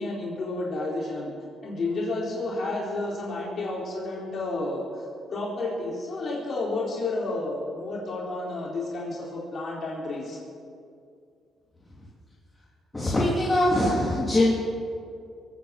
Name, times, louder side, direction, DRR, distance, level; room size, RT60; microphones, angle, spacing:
voice 1, 0.0-1.3 1.6-4.8 5.3-10.4, left 2 dB, 50° left, -3 dB, 4.1 m, -31 dB
voice 2, 12.9-14.5, left 1 dB, 15° left, -5 dB, 2.9 m, -22 dB
22.0 x 8.7 x 7.2 m, 2.4 s
cardioid pair, 90°, 0 cm